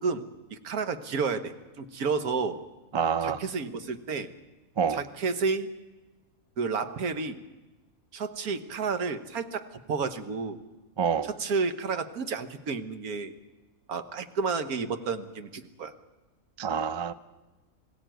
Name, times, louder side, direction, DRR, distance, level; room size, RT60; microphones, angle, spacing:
voice 1, 0.0-2.6 3.2-4.3 4.9-5.7 6.6-7.4 8.1-10.6 11.2-13.3 13.9-15.9, right 4 dB, 85° right, 1.6 m, -31 dB
voice 2, 2.9-3.4 4.8-5.0 11.0-11.3 16.6-17.1, right 6 dB, 40° right, 0.4 m, -27 dB
21.5 x 16.0 x 9.1 m
omnidirectional pair, 1.5 m